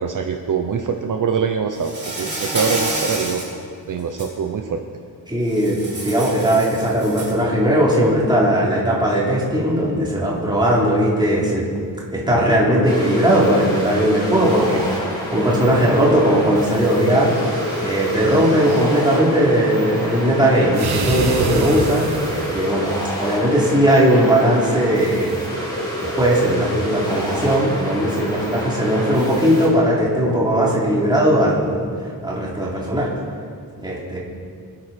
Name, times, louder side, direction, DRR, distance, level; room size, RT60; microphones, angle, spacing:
voice 1, 0.0-3.4 3.9-4.8, right 6 dB, 55° right, 5 dB, 0.9 m, -23 dB
Insect, 1.8-3.5 4.0-4.3 5.5-7.4, right 1 dB, 25° right, 4.9 m, -28 dB
voice 2, 5.3-11.6 12.1-17.3 17.8-22.9 23.2-25.4 25.9-31.9 32.2-33.1 33.8-34.2, right 1 dB, 10° right, -5 dB, 3.7 m, -18 dB
sound 1, 12.9-29.7, equal, 10° left, 5.1 m, -28 dB
sound 2, 17.1-18.9 20.7-22.7, right 3 dB, 80° right, 1.7 m, -28 dB
25.5 x 10.5 x 4.5 m, 2.2 s
wide cardioid pair, 160°, 38 cm